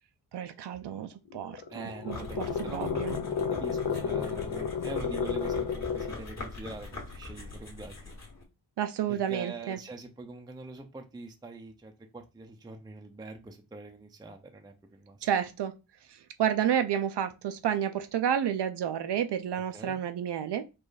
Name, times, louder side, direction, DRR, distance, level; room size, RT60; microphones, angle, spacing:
voice 1, 0.3-3.1 8.8-9.8 15.2-15.7 16.4-20.6, right 9 dB, 80° right, 0.5 m, -30 dB
sound 1, 1.3-6.3, left 6 dB, 80° left, 0.8 m, -32 dB
voice 2, 1.7-8.1 9.1-15.3 19.7-20.0, right 3 dB, 10° right, 0.4 m, -44 dB
sound 2, 2.1-8.4, left 2 dB, 40° left, 1.6 m, -43 dB
5.0 x 2.4 x 4.0 m
wide cardioid pair, 150°, 41 cm